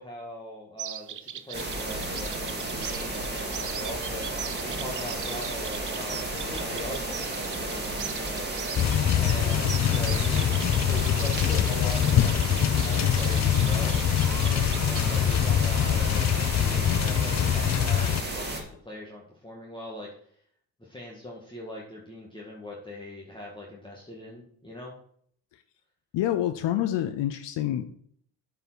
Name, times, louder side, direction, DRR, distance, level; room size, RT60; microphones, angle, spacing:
voice 1, 0.0-4.3 4.6-8.5 9.2-10.5 10.8-14.0 14.4-20.1 20.8-24.9, left 1 dB, 10° left, -4 dB, 1.9 m, -41 dB
sound 1, 0.8-15.3 16.2-16.5, right 9 dB, 45° right, 0.7 m, -40 dB
sound 2, 1.5-18.6, right 2 dB, 20° right, 2.4 m, -33 dB
sound 3, 8.8-18.2, left 10 dB, 40° left, 0.4 m, -24 dB
voice 2, 26.1-27.8, left 12 dB, 70° left, 10 dB, 0.7 m, -27 dB
7.7 x 5.0 x 6.3 m, 0.64 s
supercardioid pair, 70°, 45 cm